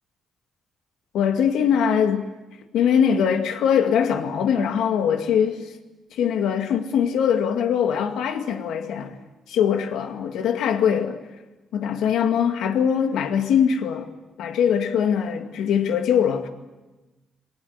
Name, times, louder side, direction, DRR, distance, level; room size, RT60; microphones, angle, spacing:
voice 1, 1.1-2.3 2.7-5.7 6.1-9.2 9.5-11.2 11.7-14.1 14.4-16.5, left 8 dB, 80° left, 2.1 m, -22 dB
22.0 x 18.0 x 9.6 m
cardioid pair, 90°, 0 cm